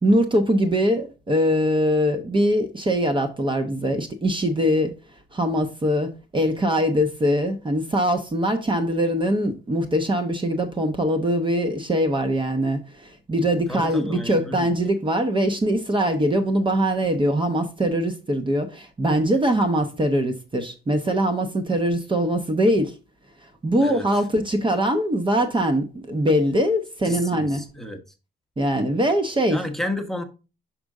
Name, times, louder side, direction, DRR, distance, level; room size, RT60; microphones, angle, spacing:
voice 1, 0.0-4.9 5.3-22.9 23.6-27.6 28.6-29.7, equal, 25° right, 0.9 m, -22 dB
voice 2, 13.7-14.7 23.8-24.1 27.0-28.0 29.5-30.2, left 1 dB, ahead, 1.1 m, -31 dB
6.0 x 5.3 x 3.6 m
cardioid pair, 90°, 20 cm